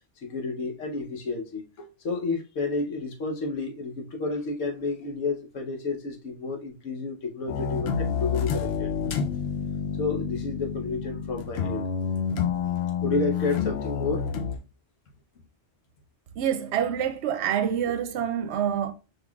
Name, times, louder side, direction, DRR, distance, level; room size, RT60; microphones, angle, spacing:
voice 1, 0.2-8.9 10.0-11.9 13.0-14.3, left 3 dB, 85° left, 1.2 m, -31 dB
sound 1, 7.5-14.5, left 7 dB, 65° left, 0.8 m, -29 dB
voice 2, 16.4-18.9, right 9 dB, 65° right, 0.9 m, -26 dB
5.3 x 3.8 x 2.3 m
omnidirectional pair, 1.3 m